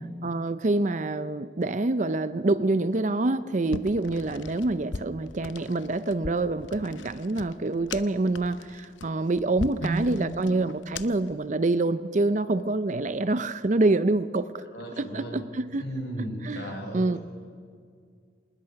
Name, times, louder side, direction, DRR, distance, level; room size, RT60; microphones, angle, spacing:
voice 1, 0.2-14.6 15.0-15.8 16.4-17.2, right 2 dB, 40° right, 14 dB, 0.5 m, -26 dB
sound 1, 3.7-11.3, left 3 dB, 75° left, 0.8 m, -40 dB
voice 2, 9.8-10.1 14.7-15.4 15.8-17.0, right 1 dB, 60° left, 1 dB, 5.5 m, -33 dB
26.0 x 20.0 x 5.8 m, 2.1 s
head